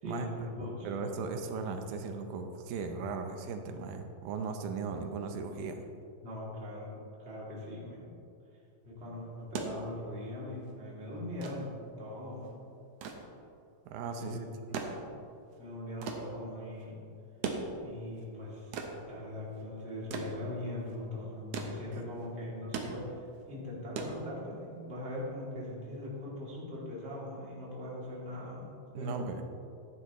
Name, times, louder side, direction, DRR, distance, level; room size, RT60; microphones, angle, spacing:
voice 1, 0.0-0.9 6.2-8.1 8.8-12.6 14.2-15.1 15.6-17.0 17.8-18.7 19.1-29.2, left 1 dB, 20° right, -6 dB, 2.5 m, -41 dB
voice 2, 0.8-5.8 13.9-14.4 28.9-29.4, right 5 dB, 90° right, 5 dB, 2.6 m, -37 dB
sound 1, 9.3-24.8 26.0-26.2, right 4 dB, 70° right, 1.6 m, -42 dB
13.0 x 11.0 x 3.1 m, 2.5 s
omnidirectional pair, 4.0 m